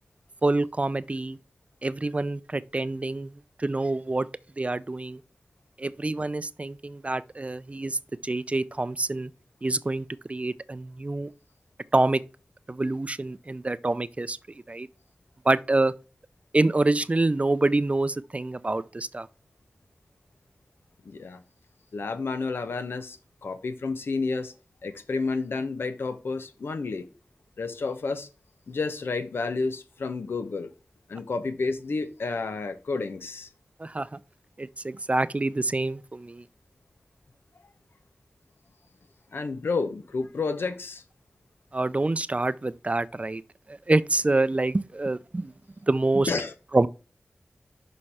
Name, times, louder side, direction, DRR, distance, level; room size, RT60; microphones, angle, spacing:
voice 1, 0.4-1.4 1.8-3.3 3.6-4.3 4.6-5.2 5.8-9.3 9.6-11.3 11.9-12.2 12.7-14.4 14.7-14.9 15.5-15.9 16.5-19.3 33.8-34.1 34.6-36.4 41.7-43.4 43.7-45.5 45.9-46.3 46.7-46.9, right 2 dB, 35° right, 0.5 m, -26 dB
voice 2, 21.0-21.4 21.9-24.5 24.8-27.1 27.6-28.3 28.7-30.7 31.1-33.5 39.3-41.0 46.3-46.5, left 4 dB, 85° left, 0.8 m, -30 dB
6.5 x 5.2 x 4.3 m
cardioid pair, 45°, 4 cm